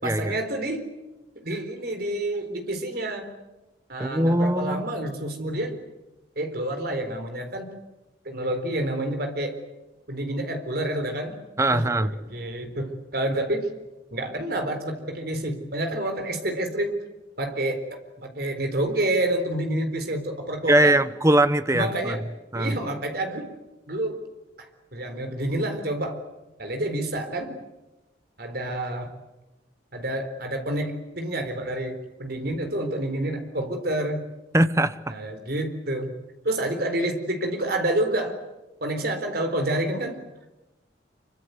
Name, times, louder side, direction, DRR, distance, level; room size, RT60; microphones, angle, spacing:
voice 1, 0.0-0.9 1.3-3.3 3.9-5.8 6.4-7.7 8.2-9.6 10.1-11.4 11.7-13.7 14.1-17.0 17.4-21.0 21.7-22.2 22.5-23.5 23.9-24.2 24.6-26.2 26.6-27.6 28.4-29.1 29.9-34.3 35.1-36.1 36.4-38.4 38.8-40.2, right 1 dB, 55° right, 6 dB, 4.1 m, -28 dB
voice 2, 4.0-4.9 11.6-12.1 20.7-22.2 22.5-22.8 34.5-35.1, right 1 dB, 15° right, 13 dB, 0.9 m, -21 dB
26.5 x 24.5 x 8.1 m, 1.0 s
head